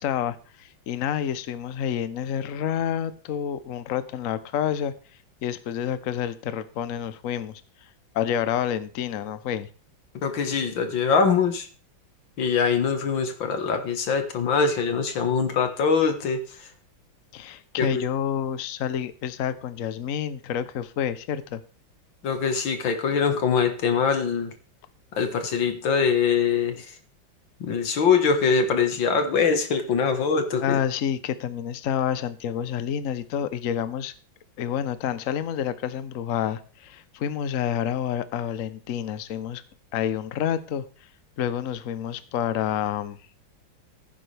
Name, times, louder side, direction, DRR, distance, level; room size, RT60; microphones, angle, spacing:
voice 1, 0.0-4.9 5.4-7.6 8.1-9.7 17.3-21.6 30.6-34.1 34.6-39.6 39.9-40.8 41.4-43.2, left 9 dB, 55° left, 1.0 m, -28 dB
voice 2, 10.2-11.7 12.4-16.4 17.8-18.0 22.2-24.5 25.2-26.9 27.6-30.8, left 5 dB, 75° left, 2.2 m, -23 dB
15.5 x 9.3 x 3.4 m
omnidirectional pair, 2.2 m